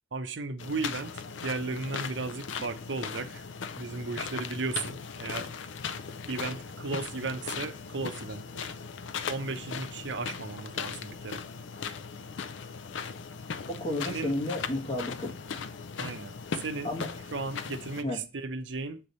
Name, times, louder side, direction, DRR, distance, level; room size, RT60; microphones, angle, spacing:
voice 1, 0.1-3.4 3.8-5.5 6.3-8.7 9.3-11.4 14.0-14.3 16.0-16.9 17.3-19.0, right 3 dB, 75° right, 0.7 m, -35 dB
sound 1, 0.6-18.0, left 6 dB, 85° left, 0.5 m, -38 dB
voice 2, 13.8-15.4 16.8-17.1 18.0-18.2, left 1 dB, 35° left, 1.6 m, -32 dB
7.5 x 3.3 x 4.1 m
head